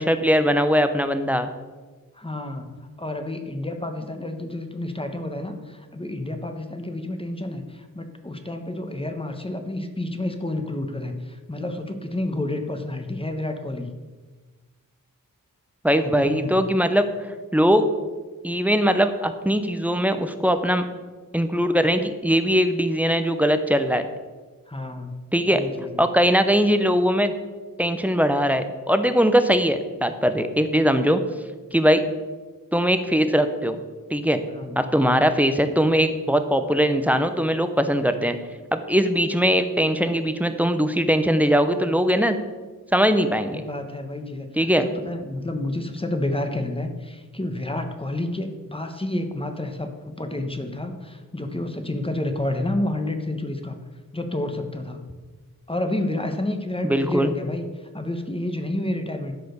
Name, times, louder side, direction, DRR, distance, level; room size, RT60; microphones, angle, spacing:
voice 1, 0.0-1.5 15.8-17.0 17.5-17.8 18.4-20.9 21.3-24.0 25.3-25.6 26.0-27.3 27.8-31.2 31.7-32.0 32.7-33.8 34.1-34.4 34.8-38.4 38.7-42.4 42.9-43.6 44.6-44.8 56.8-57.3, equal, 5° right, 8 dB, 0.8 m, -20 dB
voice 2, 2.1-13.9 16.0-16.6 24.7-25.2 25.5-26.0 34.5-35.2 43.5-44.5 44.8-53.8 54.1-55.0 55.7-59.3, left 1 dB, 15° left, 6 dB, 1.2 m, -30 dB
12.0 x 5.1 x 6.8 m, 1.3 s
wide cardioid pair, 95°, 35 cm